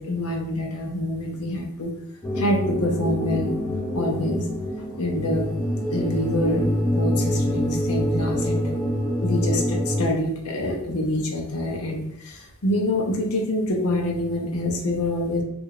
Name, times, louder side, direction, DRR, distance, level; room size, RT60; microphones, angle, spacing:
voice 1, 0.0-1.9 2.4-3.5 3.9-4.4 5.0-5.5 5.9-8.7 9.2-15.4, left 1 dB, 90° left, 1 dB, 0.7 m, -26 dB
sound 1, 2.2-10.1, equal, 10° left, 0.5 m, -25 dB
4.6 x 2.6 x 2.4 m, 0.77 s
head